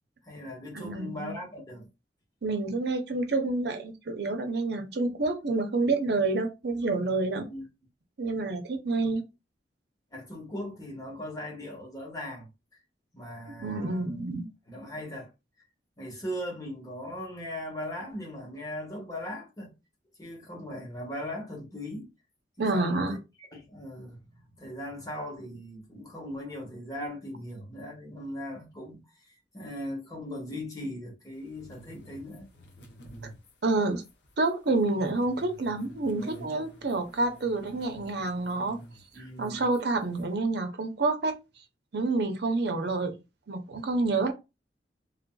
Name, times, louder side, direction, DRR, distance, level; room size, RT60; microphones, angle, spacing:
voice 1, 0.2-1.9 7.3-7.6 9.1-9.2 10.1-12.5 13.1-14.2 14.7-15.3 16.0-19.7 20.2-22.1 22.6-32.5 39.1-39.7, left 1 dB, 20° left, 1.1 m, -39 dB
voice 2, 0.7-1.4 2.4-7.5 8.2-9.2 13.6-14.5 22.6-23.2 33.6-34.0 34.4-38.8 39.1-41.4 41.9-43.1 43.5-44.3, right 3 dB, 65° right, 0.6 m, -28 dB
sound 1, 31.4-40.4, right 1 dB, 80° left, 0.8 m, -50 dB
3.4 x 2.5 x 2.3 m
head